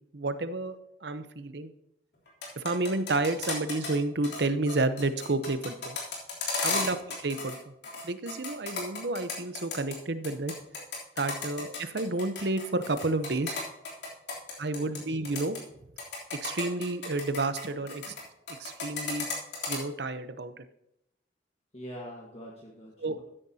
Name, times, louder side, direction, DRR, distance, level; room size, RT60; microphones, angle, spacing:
voice 1, 0.1-0.8 1.0-1.7 2.6-6.0 6.6-7.5 8.0-10.5 11.2-13.5 14.6-15.6 16.4-18.2 18.6-19.3 19.7-20.6 23.0-23.2, right 2 dB, 65° right, 11 dB, 0.8 m, -30 dB
sound 1, 2.3-4.0 4.2-4.4 4.7-7.6 7.8-9.9 10.2-15.0 15.2-15.6 16.0-18.2 18.5-19.8, left 4 dB, 70° left, 3.2 m, -34 dB
voice 2, 21.7-23.2, equal, 35° left, -2 dB, 1.5 m, -44 dB
13.0 x 10.0 x 2.8 m, 0.84 s
head